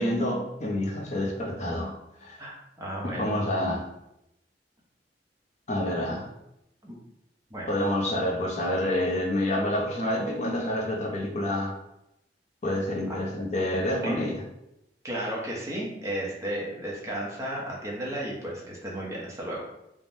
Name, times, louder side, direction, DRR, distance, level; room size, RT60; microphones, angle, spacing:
voice 1, 0.0-2.4 3.0-3.9 5.7-6.3 7.7-11.7 12.6-14.4, left 1 dB, 40° left, -2 dB, 0.6 m, -28 dB
voice 2, 2.4-3.3 6.8-7.0 7.5-7.7 13.1-13.2 14.0-14.1 15.0-19.6, right 1 dB, 15° right, -4 dB, 0.7 m, -34 dB
3.4 x 2.0 x 2.6 m, 0.85 s
head